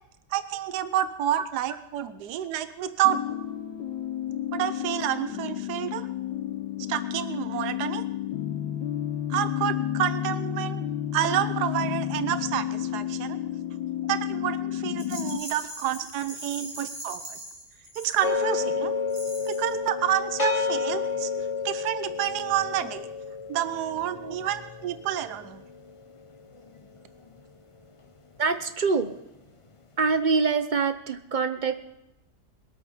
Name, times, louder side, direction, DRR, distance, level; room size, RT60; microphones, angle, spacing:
voice 1, 0.3-3.2 4.5-6.1 6.9-8.0 9.3-10.8 11.1-13.4 14.0-17.4 18.0-18.9 19.5-21.3 21.6-23.1 23.5-25.6, right 11 dB, 70° right, 12 dB, 1.3 m, -29 dB
sound 1, 3.0-15.4, left 11 dB, 85° left, 1.5 m, -31 dB
Rattle, 15.0-18.6 19.1-19.8, right 1 dB, 90° right, 4.1 m, -41 dB
sound 2, 18.2-27.4, left 5 dB, 30° left, 0.6 m, -31 dB
voice 2, 24.2-24.5 28.4-29.2 30.0-31.7, right 4 dB, 40° right, 9 dB, 0.7 m, -25 dB
22.0 x 8.3 x 5.6 m, 0.90 s
omnidirectional pair, 1.8 m